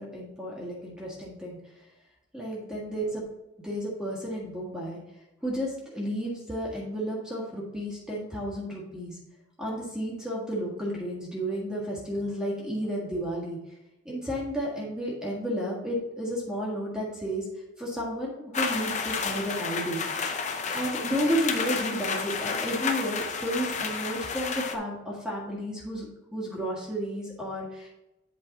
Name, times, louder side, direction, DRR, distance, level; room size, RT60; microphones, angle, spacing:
voice 1, 0.0-1.6 2.3-3.2 3.6-5.0 5.4-9.2 9.6-13.6 14.0-17.5 17.8-20.0 20.7-27.9, equal, 5° right, -5 dB, 1.6 m, -32 dB
sound 1, 18.5-24.8, left 5 dB, 35° left, 0.6 m, -31 dB
8.6 x 4.6 x 4.1 m, 0.91 s
head